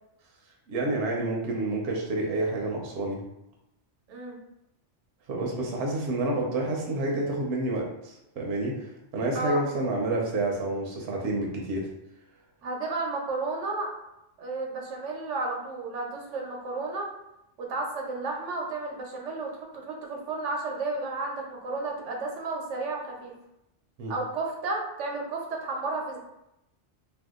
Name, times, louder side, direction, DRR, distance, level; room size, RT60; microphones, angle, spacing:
voice 1, 0.7-3.2 5.3-11.9 24.0-24.1, right 2 dB, 70° right, -1 dB, 0.8 m, -29 dB
voice 2, 4.1-4.4 9.3-9.6 12.6-13.9 14.4-17.1 17.6-23.3 24.1-26.2, right 3 dB, 90° right, 0 dB, 1.1 m, -32 dB
2.7 x 2.3 x 3.5 m, 0.86 s
omnidirectional pair, 1.2 m